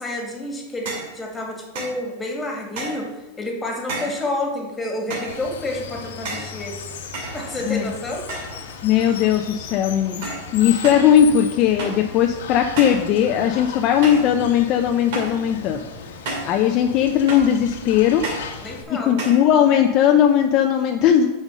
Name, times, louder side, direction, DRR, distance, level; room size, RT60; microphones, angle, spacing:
voice 1, 0.0-6.8 7.3-8.2 18.6-19.2, left 1 dB, 10° left, 0 dB, 2.1 m, -29 dB
sound 1, 0.9-1.2 1.7-2.0 2.8-3.1 3.9-4.3 5.1-5.4 6.2-6.6 7.1-7.8 8.3-8.7 9.0-9.4 10.2-10.5 10.8-11.1 11.8-12.1 12.8-13.1 14.0-14.3 15.1-15.4 16.3-16.6 17.3-17.6 18.2-18.5 19.2-19.5, right 2 dB, 65° right, 2.4 m, -31 dB
Water, 5.3-18.8, left 6 dB, 85° left, 1.3 m, -36 dB
voice 2, 8.8-10.3 10.5-15.8 16.4-18.3 18.9-21.3, left 9 dB, 40° left, 4 dB, 0.6 m, -18 dB
7.5 x 5.2 x 6.3 m, 1.1 s
supercardioid pair, 140°, 0 cm